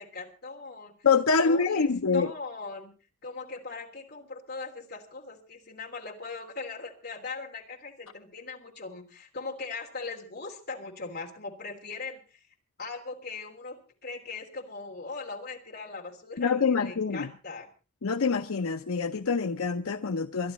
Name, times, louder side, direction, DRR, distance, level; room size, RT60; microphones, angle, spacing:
voice 1, 0.0-0.9 1.4-2.9 3.2-12.5 12.8-17.7, left 4 dB, 45° left, 3.2 m, -40 dB
voice 2, 1.0-2.3 16.4-17.3 18.0-20.5, left 5 dB, 85° left, 0.7 m, -25 dB
22.5 x 12.0 x 4.1 m
head